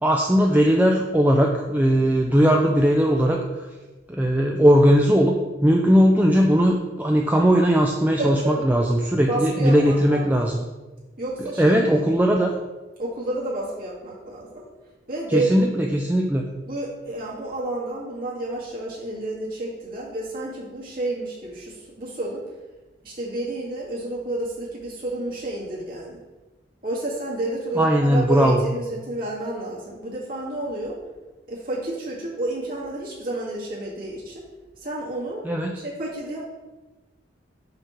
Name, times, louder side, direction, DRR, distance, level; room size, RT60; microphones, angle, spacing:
voice 1, 0.0-3.7 4.1-5.4 5.6-10.6 11.4-12.5 15.3-16.4 27.8-28.6 35.4-35.8, equal, 10° right, 0 dB, 0.4 m, -19 dB
voice 2, 8.2-8.7 9.3-10.3 11.2-11.8 13.0-14.6 15.1-15.8 16.7-22.4 23.0-26.2 26.8-30.9 31.5-34.4 34.8-35.4 35.7-36.4, right 2 dB, 50° right, -7 dB, 2.1 m, -30 dB
5.6 x 3.6 x 5.6 m, 1.2 s
head